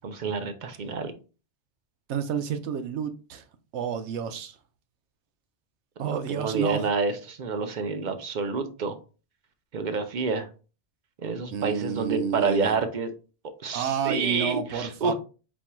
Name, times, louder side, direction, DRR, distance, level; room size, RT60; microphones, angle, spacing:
voice 1, 0.0-1.1 6.0-9.0 9.7-10.5 11.2-13.1 13.6-15.1, right 4 dB, 50° right, 0.7 m, -28 dB
voice 2, 2.1-3.5 3.7-4.6 6.0-6.9 11.5-12.8 13.7-15.1, right 8 dB, 80° right, 0.9 m, -30 dB
4.3 x 4.3 x 2.2 m
omnidirectional pair, 1.2 m